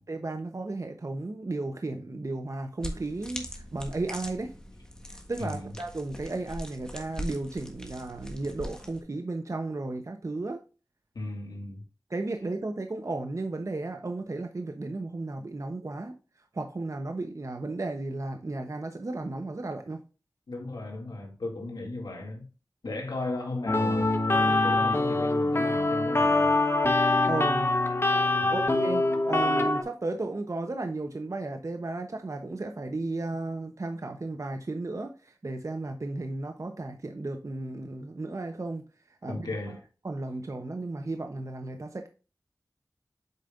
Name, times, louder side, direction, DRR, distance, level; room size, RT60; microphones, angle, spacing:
voice 1, 0.0-4.5 5.3-10.6 12.1-16.1 16.5-20.0 27.2-27.7 28.5-38.8 39.2-39.5 40.0-42.1, right 2 dB, 50° right, 0.9 m, -34 dB
sound 1, 2.8-9.0, equal, 10° left, 1.5 m, -41 dB
voice 2, 5.4-5.7 11.1-11.8 20.5-22.4 22.8-26.5 28.4-28.6 39.3-39.8, left 2 dB, 85° left, 2.3 m, -36 dB
sound 2, 23.7-29.8, left 2 dB, 35° left, 1.2 m, -24 dB
8.2 x 5.2 x 2.5 m
wide cardioid pair, 55°, 7 cm